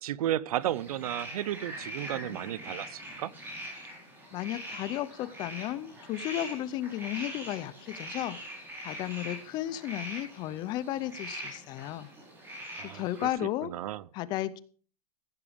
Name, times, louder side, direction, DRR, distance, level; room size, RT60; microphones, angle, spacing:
voice 1, 0.0-3.3 12.7-13.3 13.6-14.0, right 12 dB, 65° right, 0.6 m, -33 dB
sound 1, 0.6-13.3, equal, 10° right, 4.5 m, -43 dB
voice 2, 4.3-8.4 8.8-12.1 12.8-13.7 14.1-14.6, left 13 dB, 20° left, 0.5 m, -34 dB
15.5 x 11.0 x 3.5 m
supercardioid pair, 155°, 20 cm